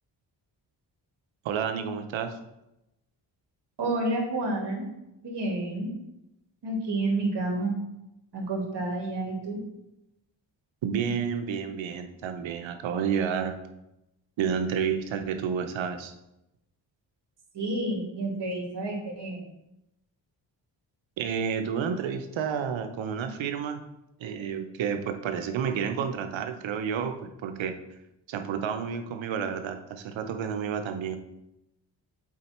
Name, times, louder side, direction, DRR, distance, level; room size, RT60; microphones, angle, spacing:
voice 1, 1.4-2.3 10.8-13.6 14.4-16.1 21.2-23.8 24.2-27.7 28.3-31.2, right 7 dB, 90° right, 7 dB, 0.8 m, -30 dB
voice 2, 3.8-4.9 5.2-5.9 6.6-7.7 8.3-9.6 17.5-19.4, right 2 dB, 65° right, 0 dB, 2.3 m, -29 dB
7.5 x 4.3 x 4.3 m, 0.89 s
cardioid pair, 75°, 45 cm